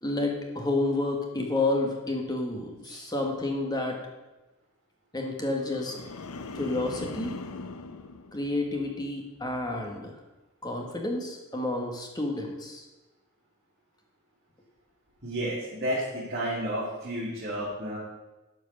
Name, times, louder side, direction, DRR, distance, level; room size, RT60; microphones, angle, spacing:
voice 1, 0.0-4.0 5.1-5.9 6.5-7.3 8.3-10.2 10.6-12.8, left 2 dB, 20° left, 1 dB, 1.5 m, -30 dB
sound 1, 5.6-9.0 9.4-9.8, left 3 dB, 80° left, 0.7 m, -41 dB
voice 2, 15.2-18.0, right 1 dB, 45° right, -8 dB, 2.8 m, -32 dB
12.5 x 4.8 x 6.5 m, 1.1 s
head